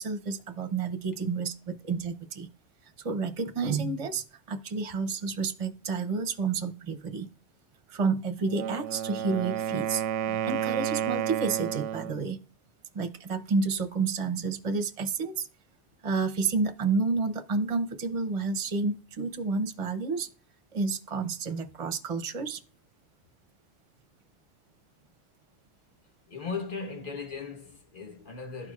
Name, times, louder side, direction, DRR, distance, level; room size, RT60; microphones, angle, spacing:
voice 1, 0.0-2.5 3.0-7.3 7.9-12.4 12.9-15.5 16.0-20.3 20.7-22.6, right 4 dB, 35° right, 0.6 m, -30 dB
Wind instrument woodwind instrument, 8.4-12.2, right 9 dB, 85° right, 0.9 m, -31 dB
voice 2, 26.3-28.7, left 5 dB, 45° left, 1.3 m, -37 dB
12.0 x 4.5 x 2.4 m
omnidirectional pair, 1.2 m